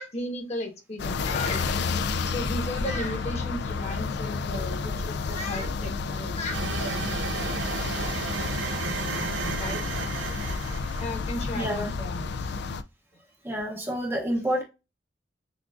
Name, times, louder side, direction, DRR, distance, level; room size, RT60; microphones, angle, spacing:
voice 1, 0.0-1.8 2.2-7.3 7.5-7.8 9.5-9.8 11.0-12.6, left 1 dB, 35° left, 1.1 m, -35 dB
sound 1, 1.0-12.8, left 4 dB, 60° left, 0.4 m, -31 dB
sound 2, 6.5-11.3, right 5 dB, 70° right, 0.4 m, -33 dB
voice 2, 11.6-11.9 13.4-14.6, equal, 10° right, 0.7 m, -28 dB
6.0 x 2.5 x 2.4 m
head